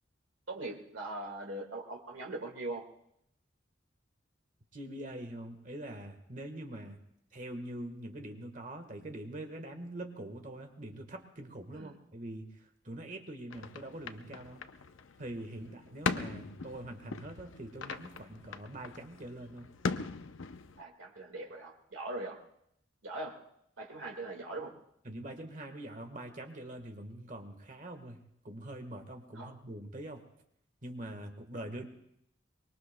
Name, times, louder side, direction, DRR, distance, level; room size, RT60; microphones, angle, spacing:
voice 1, 0.5-2.9 11.7-12.0 15.6-15.7 20.8-22.4 23.0-23.4 23.8-24.8 29.3-29.5, right 2 dB, 85° right, 0 dB, 1.8 m, -41 dB
voice 2, 4.7-7.0 7.3-14.6 15.2-19.7 25.0-28.2 28.4-30.2 30.8-31.9, right 1 dB, 40° right, 5 dB, 1.4 m, -44 dB
sound 1, 13.5-20.8, left 4 dB, 80° left, 0.6 m, -40 dB
24.0 x 21.5 x 2.2 m, 0.74 s
head